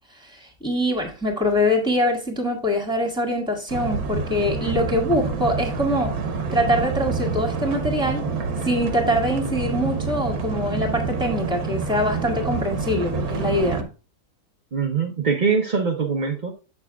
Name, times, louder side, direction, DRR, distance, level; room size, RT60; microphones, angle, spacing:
voice 1, 0.2-6.2 6.5-8.2 8.6-13.9, left 1 dB, 5° right, 1.8 m, -23 dB
sound 1, 3.7-13.8, right 4 dB, 65° right, 1.4 m, -27 dB
voice 2, 14.7-16.5, right 5 dB, 40° right, 0.7 m, -23 dB
8.3 x 6.7 x 2.3 m
omnidirectional pair, 1.7 m